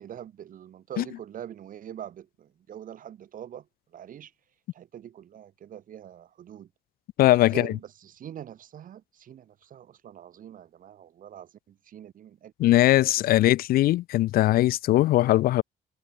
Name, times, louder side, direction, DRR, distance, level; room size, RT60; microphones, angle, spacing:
voice 1, 0.0-3.7 3.9-4.3 4.7-6.7 7.5-12.8, right 10 dB, 55° right, 3.0 m, -44 dB
voice 2, 7.2-7.7 12.6-15.6, left 15 dB, 60° left, 0.4 m, -20 dB
cardioid pair, 110°, 17 cm